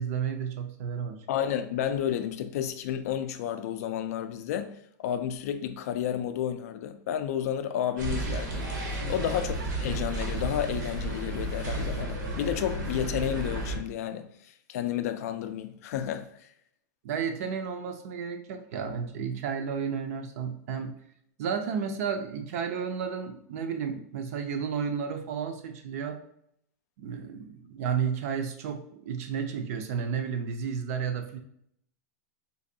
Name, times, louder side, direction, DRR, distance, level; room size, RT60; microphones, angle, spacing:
voice 1, 0.0-1.2 9.0-9.3 17.0-21.0 21.4-26.2 27.0-31.4, right 7 dB, 50° right, 0.5 m, -32 dB
voice 2, 1.3-8.7 9.1-16.5, left 10 dB, 55° left, 0.3 m, -31 dB
sound 1, 8.0-13.8, right 1 dB, 85° right, 1.1 m, -32 dB
3.9 x 2.5 x 2.6 m
supercardioid pair, 160°, 10 cm